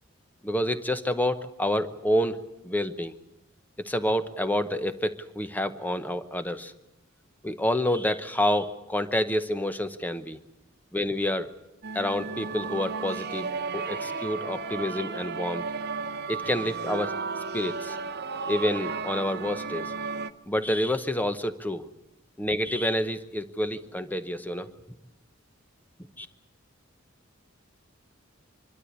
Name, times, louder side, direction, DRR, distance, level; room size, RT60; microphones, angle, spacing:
voice 1, 0.4-2.4 2.6-3.1 3.8-6.7 7.4-10.4 10.9-11.5 11.9-13.5 13.7-15.7 16.3-17.1 17.5-18.0 18.5-19.9 20.5-21.9 22.4-24.7 26.2-26.3, left 1 dB, 10° left, 10 dB, 0.9 m, -28 dB
sound 1, 11.8-20.3, right 5 dB, 55° right, 0.8 m, -34 dB
25.0 x 12.5 x 10.0 m, 0.98 s
head